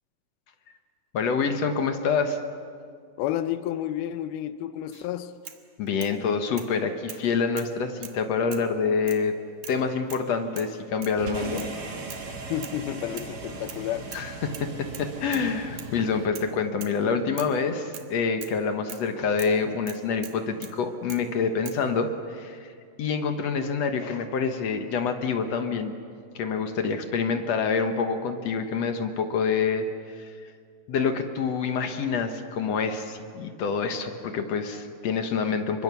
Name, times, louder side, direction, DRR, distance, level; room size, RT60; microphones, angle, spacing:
voice 1, 1.1-2.4 5.8-9.3 9.7-11.7 14.1-22.7 23.0-25.9 26.4-29.9 30.1-30.3 30.9-35.8, left 5 dB, 60° left, 6 dB, 1.9 m, -27 dB
voice 2, 3.2-5.3 12.5-14.1, left 12 dB, 90° left, 11 dB, 2.7 m, -31 dB
sound 1, 4.9-5.1 5.4-6.2 6.6-6.7 7.1-7.3 7.5-8.2 8.5-8.7 9.1-9.2 9.6-9.8 10.1-10.3 10.6-10.7 11.0-11.2 11.6-11.8 12.1-12.3 12.6-12.8 13.2-13.8 14.1-14.3 14.5-15.5 15.8-15.9 16.3-16.5 16.8-17.0 17.4-17.6 17.9-18.1 18.4-18.6 18.9-19.1 19.4-19.6 19.9-20.8 21.1-21.3 21.7-21.8, right 10 dB, 65° right, 2.7 m, -43 dB
sound 2, 11.2-16.3, right 3 dB, 35° right, 1.9 m, -38 dB
27.0 x 23.5 x 7.0 m, 2.2 s
omnidirectional pair, 4.3 m